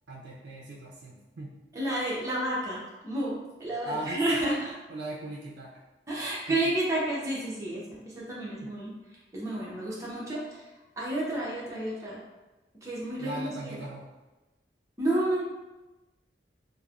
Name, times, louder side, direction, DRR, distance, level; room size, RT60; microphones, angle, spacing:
voice 1, 0.1-1.6 3.8-4.2 4.9-5.8 6.5-6.6 8.6-8.7 13.2-14.1, right 2 dB, 80° right, -4 dB, 0.4 m, -39 dB
voice 2, 1.7-4.7 6.1-8.9 9.3-10.7 11.0-12.2 12.8-13.8 15.0-15.4, right 1 dB, 20° right, -6 dB, 0.7 m, -31 dB
3.1 x 2.1 x 2.4 m, 1.1 s
head